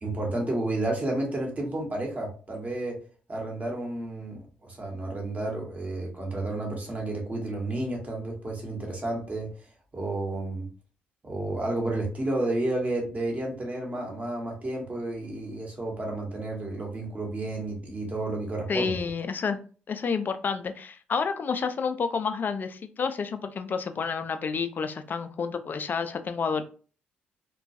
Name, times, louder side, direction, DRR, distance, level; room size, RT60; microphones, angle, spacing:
voice 1, 0.0-3.0 3.3-9.5 9.9-10.7 11.2-18.9, right 2 dB, 35° right, 0 dB, 1.1 m, -31 dB
voice 2, 18.7-19.6 19.9-26.6, left 5 dB, 45° left, 10 dB, 0.4 m, -29 dB
2.3 x 2.2 x 2.6 m, 0.39 s
hypercardioid pair, 50°, 5 cm